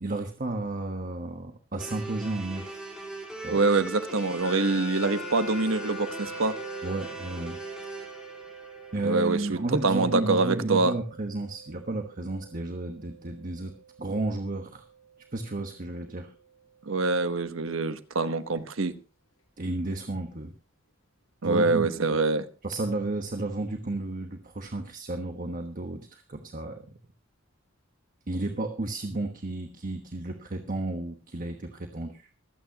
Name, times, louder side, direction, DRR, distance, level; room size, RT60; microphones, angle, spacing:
voice 1, 0.0-2.9 3.4-3.6 6.8-7.6 8.9-13.7 14.0-14.8 15.3-16.3 19.6-20.5 21.4-22.2 22.6-26.8 28.3-32.3, right 2 dB, 45° right, 1.2 m, -32 dB
sound 1, 1.8-9.9, right 2 dB, 5° right, 4.0 m, -41 dB
voice 2, 3.5-6.6 9.0-10.9 16.9-18.9 21.4-22.5, right 3 dB, 90° right, 1.1 m, -25 dB
sound 2, 4.4-17.3, right 1 dB, 85° left, 7.4 m, -44 dB
24.5 x 9.2 x 2.9 m
head